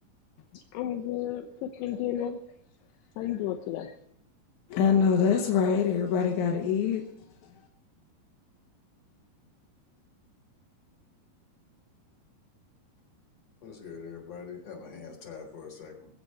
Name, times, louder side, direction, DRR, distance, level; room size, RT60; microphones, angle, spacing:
voice 1, 0.5-2.4 3.2-3.9, left 11 dB, 80° left, 2.9 m, -33 dB
voice 2, 4.7-7.0, left 6 dB, 60° left, 2.3 m, -24 dB
voice 3, 13.6-16.1, left 6 dB, 35° left, 4.8 m, -43 dB
21.5 x 8.1 x 7.8 m
omnidirectional pair, 5.0 m